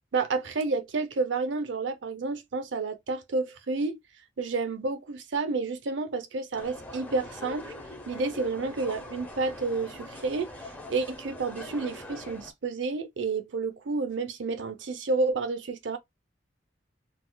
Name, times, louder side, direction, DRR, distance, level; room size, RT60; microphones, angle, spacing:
voice 1, 0.1-4.0 4.4-7.7 8.1-10.5 10.9-16.0, right 3 dB, 75° right, 0.6 m, -30 dB
sound 1, 6.5-12.5, left 1 dB, 10° left, 0.7 m, -43 dB
3.9 x 2.3 x 2.2 m
head